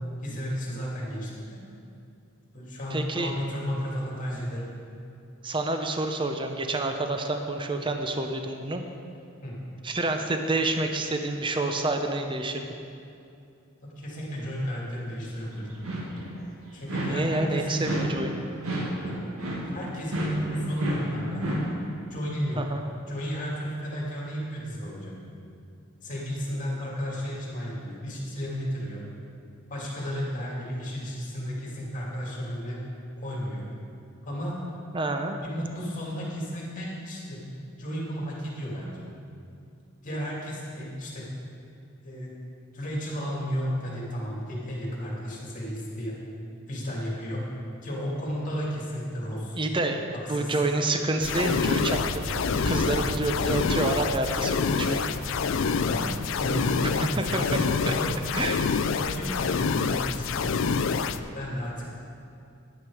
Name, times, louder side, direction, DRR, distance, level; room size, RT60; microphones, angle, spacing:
voice 1, 0.2-1.6 2.5-4.7 9.4-9.6 13.8-15.8 16.7-18.0 19.0-19.2 19.7-21.5 22.1-22.6 23.1-25.1 26.0-29.0 29.7-32.8 33.2-33.6 34.2-34.6 35.4-37.5 37.8-39.0 40.0-41.3 42.0-42.3 42.7-46.1 46.7-47.4 47.8-49.6 50.1-50.6 55.7-56.1 56.4-58.3 58.9-60.7 61.3-61.8, equal, 35° left, -4 dB, 2.4 m, -33 dB
voice 2, 2.9-3.3 5.4-8.8 9.8-12.7 16.9-18.4 22.6-22.8 34.9-35.4 49.5-52.3 52.6-55.1 57.2-57.9 58.3-58.6, right 2 dB, 25° right, 5 dB, 0.6 m, -28 dB
sound 1, 15.7-16.4 16.9-17.5 17.8-21.8, right 1 dB, 85° right, 1.7 m, -31 dB
sound 2, 51.2-61.2, left 5 dB, 60° left, 0.4 m, -27 dB
sound 3, 51.7-57.9, equal, 50° right, 1.1 m, -38 dB
10.5 x 9.3 x 4.8 m, 2.6 s
head